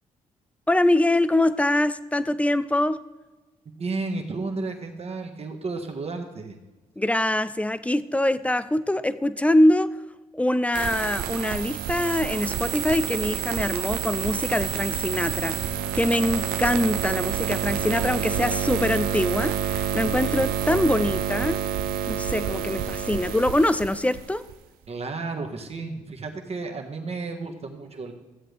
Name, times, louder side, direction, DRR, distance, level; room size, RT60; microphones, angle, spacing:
voice 1, 0.7-3.0 7.0-9.9 10.3-21.6 22.1-24.4, left 1 dB, 10° left, 14 dB, 0.5 m, -24 dB
voice 2, 3.8-6.6 24.9-28.1, right 3 dB, 45° right, 3 dB, 1.6 m, -32 dB
sound 1, 10.7-24.5, right 8 dB, 85° right, 0.6 m, -28 dB
14.5 x 7.7 x 3.5 m, 1.2 s
supercardioid pair, 55°, 15 cm